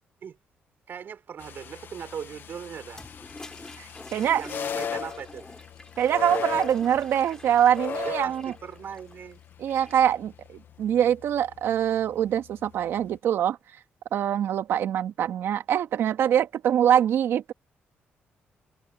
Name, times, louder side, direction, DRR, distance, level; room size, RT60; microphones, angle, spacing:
voice 1, 0.9-3.0 4.3-5.5 8.0-9.4, right 7 dB, 60° right, 4.2 m, -39 dB
sound 1, 1.4-13.2, left 8 dB, 60° left, 1.5 m, -39 dB
Toilet flush, 2.9-10.1, left 2 dB, 15° left, 3.6 m, -46 dB
voice 2, 4.1-4.4 6.0-8.5 9.6-13.6 14.1-17.5, right 10 dB, 75° right, 2.4 m, -24 dB
cardioid pair, 95°, 4 cm